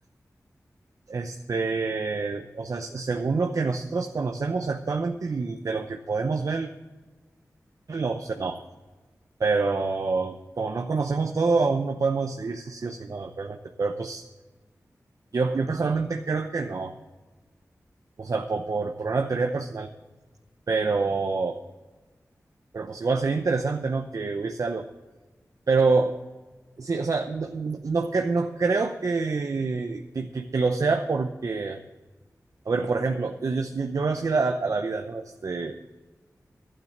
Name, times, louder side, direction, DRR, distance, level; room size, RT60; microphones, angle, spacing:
voice 1, 1.1-6.7 7.9-8.6 9.4-14.3 15.3-16.9 18.2-19.9 20.7-21.6 22.7-24.9 25.7-26.1 26.8-31.8 32.7-35.8, right 4 dB, 65° right, 5 dB, 0.8 m, -26 dB
12.0 x 9.1 x 7.3 m, 1.2 s
wide cardioid pair, 105°, 6 cm